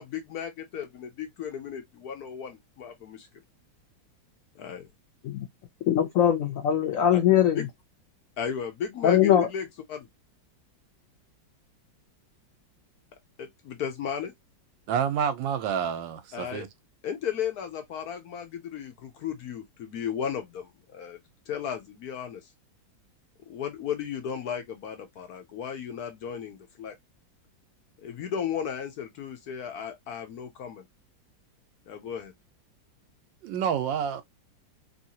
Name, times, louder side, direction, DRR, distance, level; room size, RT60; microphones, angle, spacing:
voice 1, 0.0-3.3 4.6-4.8 7.5-7.7 8.4-10.1 13.4-14.3 16.3-16.6 17.0-21.2 21.5-22.5 23.5-26.9 28.0-30.8 31.9-32.3, left 8 dB, 65° left, 1.0 m, -35 dB
voice 2, 5.9-7.6 9.0-9.5, left 10 dB, 85° left, 0.7 m, -21 dB
voice 3, 14.9-16.7 33.4-34.2, right 8 dB, 80° right, 1.3 m, -28 dB
3.1 x 2.7 x 2.7 m
omnidirectional pair, 2.1 m